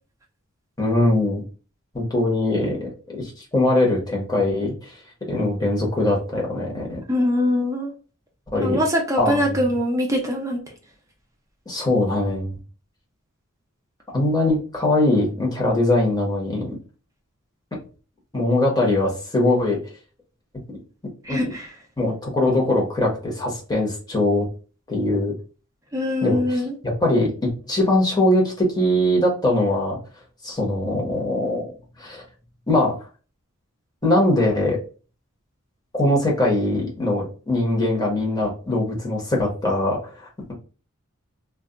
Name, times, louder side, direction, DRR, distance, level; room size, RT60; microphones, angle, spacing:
voice 1, 0.8-1.4 1.9-5.0 5.3-7.0 8.5-8.8 9.2-9.6 11.7-12.6 14.1-16.8 18.3-19.8 21.3-21.5 22.0-24.5 24.9-25.3 26.2-27.3 27.7-30.0 30.4-31.7 32.0-32.2 32.7-32.9 34.0-34.8 35.9-40.5, left 1 dB, 20° left, -2 dB, 0.9 m, -21 dB
voice 2, 7.1-7.9 8.6-10.6 21.2-21.7 25.9-26.7, left 1 dB, 15° right, 0 dB, 0.6 m, -22 dB
2.3 x 2.2 x 3.6 m, 0.37 s
head